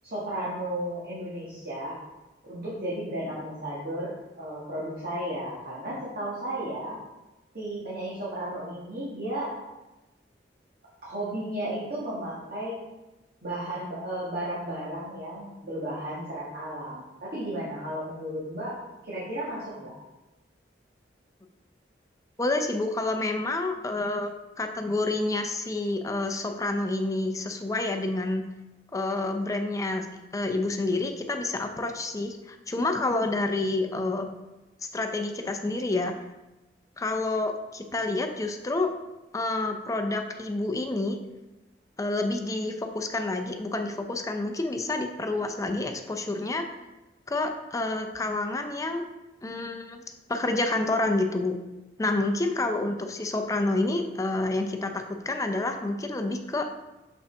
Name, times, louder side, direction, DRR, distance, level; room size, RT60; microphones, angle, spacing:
voice 1, 0.0-2.0 2.4-7.0 7.5-9.5 11.0-12.8 13.4-18.7 19.0-19.9, right 1 dB, 55° right, -8 dB, 1.6 m, -34 dB
voice 2, 22.4-24.3 24.6-28.5 28.9-34.3 34.9-36.1 37.0-38.9 39.3-41.2 42.0-46.6 47.3-49.1 49.4-50.0 50.3-51.6 52.0-56.7, left 2 dB, 20° left, 5 dB, 0.5 m, -28 dB
6.3 x 5.5 x 3.3 m, 1.0 s
head